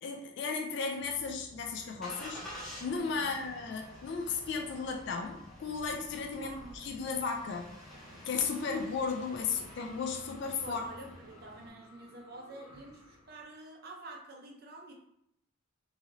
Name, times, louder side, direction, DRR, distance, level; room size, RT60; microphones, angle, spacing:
voice 1, 0.0-7.7 8.3-10.8, left 5 dB, 55° left, 2 dB, 0.3 m, -35 dB
Engine starting, 1.0-11.7, equal, ahead, 0.7 m, -50 dB
sound 1, 2.2-14.2, left 1 dB, 90° left, 1.1 m, -57 dB
voice 2, 6.3-6.9 10.6-14.9, right 2 dB, 45° right, 2 dB, 0.5 m, -48 dB
2.9 x 2.7 x 2.5 m, 0.74 s
head